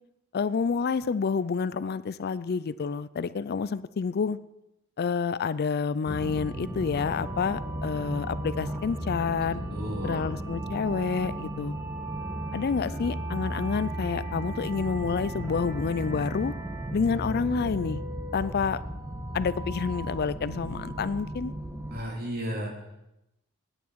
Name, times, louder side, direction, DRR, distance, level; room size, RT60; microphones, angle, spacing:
voice 1, 0.3-4.4 5.0-9.6 10.0-11.7 12.5-16.5 16.9-18.0 18.3-18.8 19.3-21.5, left 5 dB, 45° left, 16 dB, 0.4 m, -28 dB
sound 1, 6.1-22.0, right 1 dB, 15° right, 1.5 m, -35 dB
voice 2, 9.7-10.3 12.8-13.0 21.9-22.7, equal, 45° right, 1 dB, 2.9 m, -34 dB
18.0 x 9.1 x 4.7 m, 0.86 s
head